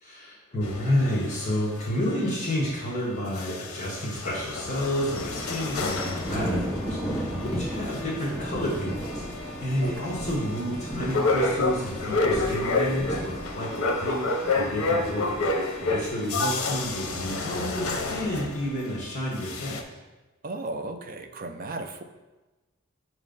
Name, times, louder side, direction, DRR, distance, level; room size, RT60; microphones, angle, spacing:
voice 1, 0.0-19.8, equal, 35° left, -5 dB, 1.2 m, -30 dB
sound 1, 0.6-3.0 3.3-19.0 19.3-19.8, left 3 dB, 85° left, 0.6 m, -30 dB
sound 2, 5.1-17.0, equal, ahead, 0.6 m, -35 dB
voice 2, 9.8-10.1 20.4-22.0, right 2 dB, 40° right, 7 dB, 0.4 m, -35 dB
6.0 x 3.2 x 5.2 m, 1.2 s
head